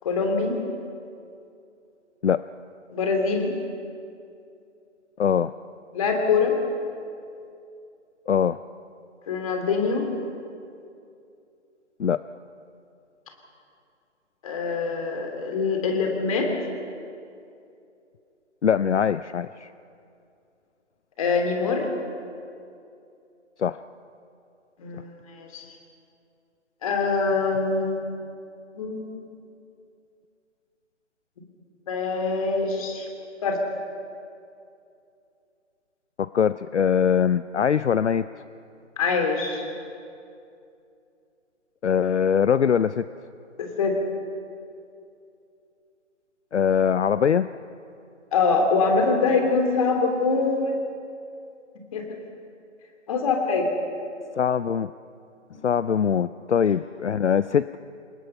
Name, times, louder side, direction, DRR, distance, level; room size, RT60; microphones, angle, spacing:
voice 1, 0.0-0.6 2.9-3.5 5.9-6.6 9.3-10.1 14.4-16.5 21.2-21.9 24.8-25.6 26.8-28.1 28.7-29.1 31.9-33.1 33.4-33.6 39.0-39.7 43.6-44.0 48.3-50.8 51.9-52.0 53.1-53.7 55.5-55.7, left 4 dB, 30° left, 3 dB, 2.8 m, -24 dB
voice 2, 5.2-5.5 8.3-8.6 12.0-12.2 18.6-19.7 23.6-23.8 24.9-25.0 36.2-38.3 41.8-43.1 46.5-47.5 54.4-54.9 55.6-57.8, left 7 dB, 65° left, 15 dB, 0.6 m, -22 dB
28.0 x 19.0 x 5.6 m, 2.5 s
figure-of-eight pair, 155°, 37 cm